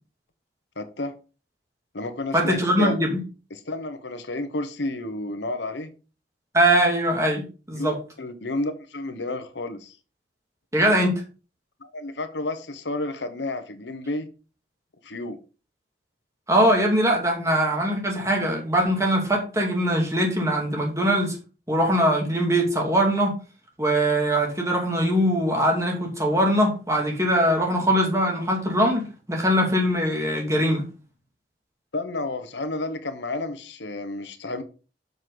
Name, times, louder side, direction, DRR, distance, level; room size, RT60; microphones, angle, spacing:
voice 1, 0.8-1.1 1.9-3.0 3.5-5.9 7.7-10.0 11.8-14.3 15.0-15.4 31.9-34.6, left 2 dB, 85° left, 10 dB, 1.2 m, -31 dB
voice 2, 2.3-3.2 6.5-8.0 10.7-11.2 16.5-21.4 21.7-23.3 23.8-30.8, equal, 15° right, 1 dB, 2.4 m, -22 dB
7.2 x 6.5 x 3.9 m, 0.34 s
head